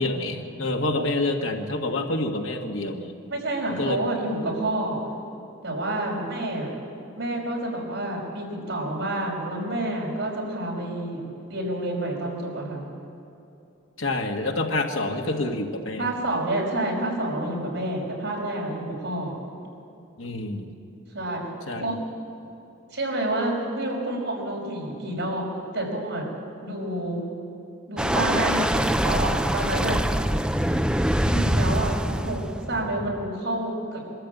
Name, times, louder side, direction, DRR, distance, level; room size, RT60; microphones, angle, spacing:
voice 1, 0.0-3.1 3.8-4.0 4.5-4.6 14.0-16.1 20.2-20.7 21.7-21.9, left 2 dB, 85° left, 2 dB, 2.0 m, -27 dB
voice 2, 3.3-5.0 5.6-6.7 7.2-11.2 11.5-12.9 16.0-19.3 21.1-21.4 21.8-22.0 22.9-25.5 25.7-26.3 26.6-27.3 27.9-30.0 31.2-34.0, right 1 dB, 65° right, -2 dB, 5.5 m, -28 dB
sound 1, 28.0-33.3, equal, 5° right, 0.5 m, -24 dB
23.5 x 13.0 x 8.5 m, 2.7 s
head